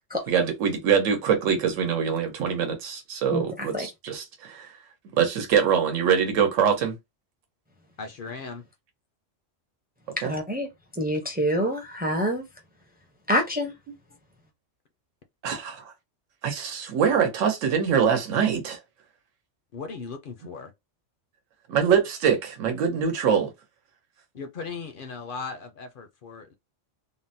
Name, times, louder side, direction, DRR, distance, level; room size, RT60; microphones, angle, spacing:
voice 1, 0.3-4.7 5.2-7.0 10.2-10.3 15.4-15.9 16.4-18.8 21.7-23.5, right 7 dB, 85° right, 1.1 m, -24 dB
voice 2, 3.3-3.9 10.2-10.7 11.0-12.4 13.3-13.7, equal, 15° right, 0.3 m, -26 dB
voice 3, 8.0-8.6 19.7-20.7 24.4-26.5, left 4 dB, 60° left, 0.6 m, -37 dB
3.5 x 2.0 x 2.6 m
omnidirectional pair, 1.3 m